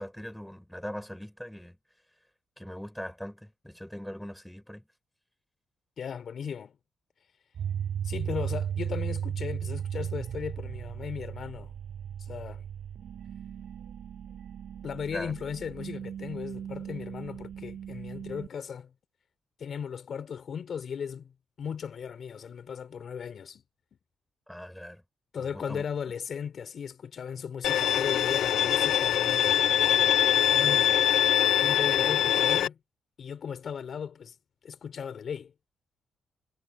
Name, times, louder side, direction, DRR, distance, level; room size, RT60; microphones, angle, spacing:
voice 1, 0.0-1.8 2.6-4.8 15.1-15.3 24.5-25.0 25.4-25.9, equal, 5° left, 4.5 m, -40 dB
voice 2, 6.0-6.8 8.0-11.7 12.3-12.6 14.8-18.9 19.6-21.3 21.6-23.6 25.3-29.7 30.5-31.0 31.6-32.8 33.2-34.3 34.6-35.5, left 7 dB, 55° left, 3.3 m, -37 dB
sound 1, 7.6-18.5, right 9 dB, 65° right, 5.0 m, -36 dB
Bowed string instrument, 27.6-32.7, left 10 dB, 75° left, 0.5 m, -23 dB
cardioid pair, 105°, 0 cm